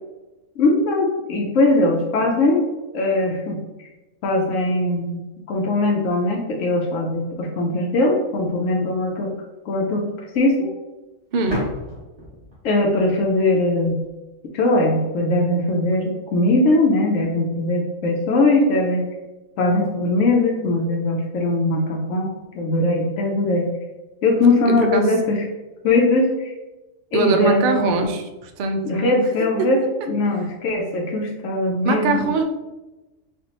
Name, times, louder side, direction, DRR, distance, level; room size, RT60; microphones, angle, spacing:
voice 1, 0.6-2.6 2.9-3.9 4.2-9.3 9.7-10.1 10.3-10.7 12.6-14.0 14.5-19.0 19.6-23.7 24.2-25.4 25.8-26.5 27.1-28.1 28.8-29.8 30.1-32.3, left 2 dB, 75° left, -1 dB, 0.9 m, -20 dB
sound 1, 8.5-8.6 11.5-14.1, left 1 dB, 20° right, 1.3 m, -34 dB
voice 2, 24.7-25.1 27.1-29.2 29.6-29.7 31.8-32.4, right 3 dB, 90° right, 5 dB, 0.4 m, -21 dB
4.4 x 2.4 x 2.8 m, 1.1 s
omnidirectional pair, 1.4 m